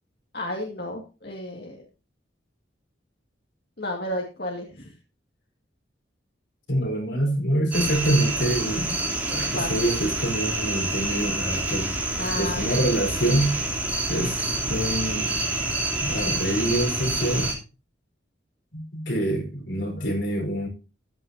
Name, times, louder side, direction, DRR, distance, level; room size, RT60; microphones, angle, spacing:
voice 1, 0.3-1.8 3.8-4.9 9.5-9.7 12.2-12.8, left 1 dB, 55° left, 2.1 m, -32 dB
voice 2, 6.7-9.0 9.3-11.9 12.4-13.6 14.1-15.3 16.0-17.5 18.7-20.7, right 1 dB, 75° left, 4.8 m, -26 dB
sound 1, 7.7-17.5, right 2 dB, 10° right, 3.3 m, -27 dB
14.5 x 11.0 x 2.8 m
head